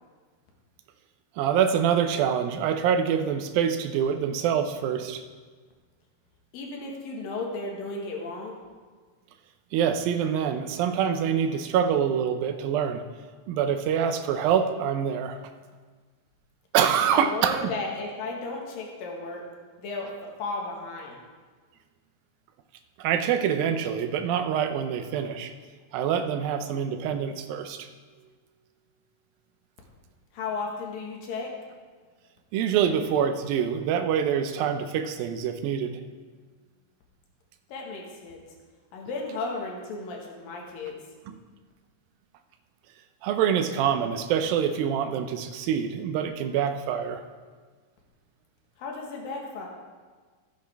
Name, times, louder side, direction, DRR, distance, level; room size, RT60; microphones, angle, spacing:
voice 1, 1.4-5.2 9.7-13.0 13.5-15.4 16.7-17.7 23.0-25.5 25.9-27.9 32.5-36.0 41.3-41.4 43.2-47.2, right 8 dB, 85° right, 8 dB, 2.5 m, -25 dB
voice 2, 6.5-8.6 17.1-19.4 19.8-21.2 30.3-31.5 37.7-38.4 38.9-40.9 48.8-49.7, left 3 dB, 80° left, 0 dB, 3.2 m, -34 dB
15.0 x 8.3 x 3.4 m, 1.5 s
omnidirectional pair, 4.0 m